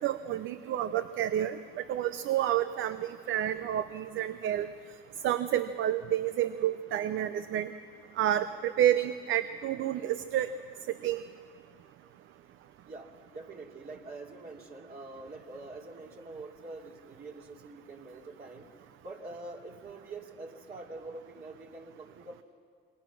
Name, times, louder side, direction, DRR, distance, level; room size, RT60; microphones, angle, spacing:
voice 1, 0.0-4.7 5.2-7.7 8.2-10.5 10.9-11.2, right 11 dB, 85° right, 12 dB, 0.7 m, -29 dB
voice 2, 12.8-18.7 19.0-22.4, right 2 dB, 50° right, -1 dB, 2.9 m, -45 dB
27.5 x 23.0 x 6.2 m, 2.1 s
cardioid pair, 90°, 20 cm